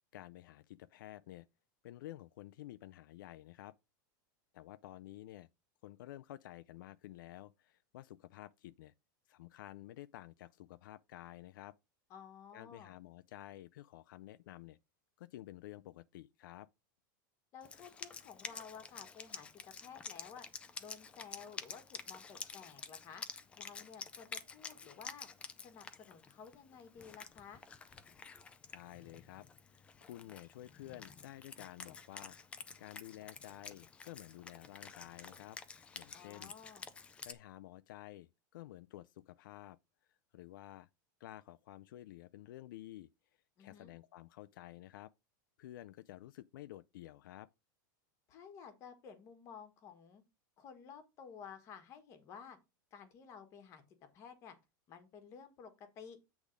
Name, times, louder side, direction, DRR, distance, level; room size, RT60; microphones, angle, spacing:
voice 1, 0.1-1.5 1.8-3.7 4.5-5.5 5.8-8.9 9.3-11.7 12.5-14.8 15.2-16.7 28.7-29.5 30.0-32.4 32.8-35.6 35.9-36.5 37.3-39.8 40.1-40.9 41.2-43.1 43.6-45.1 45.6-47.5, left 14 dB, 75° left, 0.4 m, -51 dB
voice 2, 12.1-12.9 17.5-19.5 19.8-20.5 20.8-23.2 23.6-25.3 25.6-27.6 36.1-36.9 43.6-43.9 48.3-50.2 50.6-52.6 52.9-53.8 54.1-54.6 54.9-56.2, left 7 dB, 25° left, 1.3 m, -53 dB
Wind instrument woodwind instrument, 17.6-37.3, left 5 dB, 10° left, 0.4 m, -50 dB
8.3 x 3.5 x 5.0 m
supercardioid pair, 175°, 11 cm